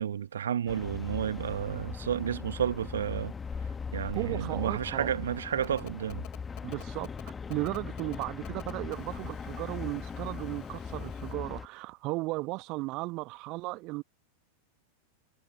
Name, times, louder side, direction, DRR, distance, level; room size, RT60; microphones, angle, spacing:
voice 1, 0.0-3.3 3.9-6.2, right 9 dB, 65° right, 1.4 m, -31 dB
sound 1, 0.7-11.7, left 5 dB, 15° left, 1.2 m, -40 dB
voice 2, 4.1-5.1 6.6-7.1 7.5-14.0, right 22 dB, 40° right, 1.3 m, -35 dB
Telephone, 5.6-11.3, left 26 dB, 40° left, 3.9 m, -50 dB
figure-of-eight pair, 90°, 0 cm